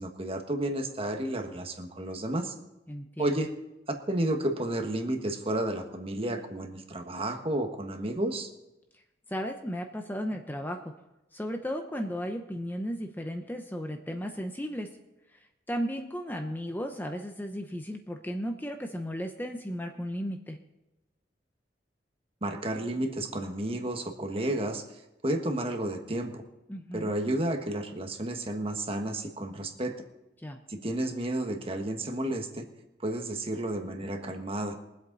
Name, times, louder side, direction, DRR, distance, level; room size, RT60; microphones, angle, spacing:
voice 1, 0.0-2.5 3.2-3.5 4.1-8.5 22.4-24.8 25.2-26.4 26.9-30.0 30.7-32.6 33.0-34.8, right 1 dB, 35° right, 5 dB, 1.5 m, -31 dB
voice 2, 2.9-3.4 9.3-10.9 11.3-14.9 15.3-15.4 15.7-20.6 26.7-27.1 30.4-30.6, equal, 10° left, 4 dB, 0.8 m, -35 dB
22.5 x 8.1 x 4.1 m, 0.95 s
head